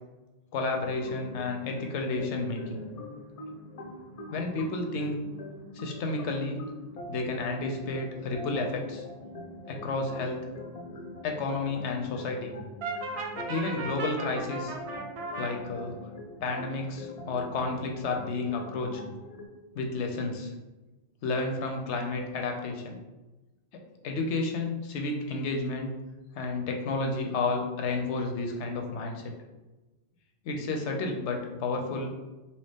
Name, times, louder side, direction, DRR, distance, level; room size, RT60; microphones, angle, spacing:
voice 1, 0.5-2.8 4.3-5.2 5.7-6.6 7.1-9.0 9.7-10.5 11.2-12.5 13.5-14.7 15.4-16.0 16.4-19.0 19.7-20.5 21.2-23.0 24.0-25.9 26.3-29.3 30.4-32.1, left 3 dB, 80° left, 3 dB, 0.9 m, -31 dB
sound 1, 0.8-19.5, left 1 dB, 50° left, 0.4 m, -43 dB
Brass instrument, 12.8-15.5, right 3 dB, 65° right, 0.7 m, -36 dB
2.9 x 2.8 x 3.4 m, 1.1 s
omnidirectional pair, 1.2 m